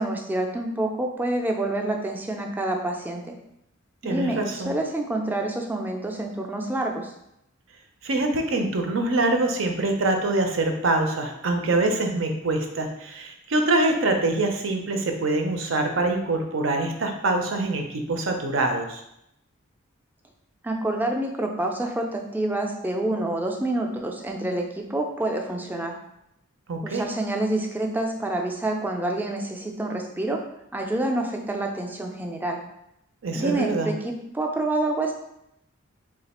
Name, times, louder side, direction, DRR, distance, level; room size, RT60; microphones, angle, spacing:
voice 1, 0.0-3.3 4.0-7.1 20.6-25.9 26.8-30.4 30.7-32.6 33.3-35.1, right 1 dB, 10° right, 2 dB, 0.4 m, -27 dB
voice 2, 4.0-4.7 8.0-19.0 26.7-27.0 33.2-33.9, right 2 dB, 70° right, 4 dB, 0.6 m, -24 dB
3.2 x 2.4 x 4.1 m, 0.81 s
head